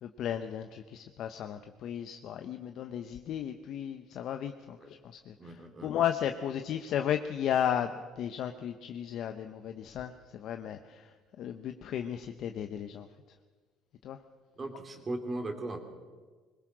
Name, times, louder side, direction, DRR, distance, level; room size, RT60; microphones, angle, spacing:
voice 1, 0.0-5.6 5.8-11.0 11.4-13.1 14.0-14.2, left 9 dB, 60° left, 7 dB, 0.9 m, -34 dB
voice 2, 5.4-5.9 14.6-15.8, right 2 dB, 25° right, 6 dB, 3.0 m, -38 dB
22.0 x 20.0 x 6.3 m, 1.5 s
cardioid pair, 125°, 0 cm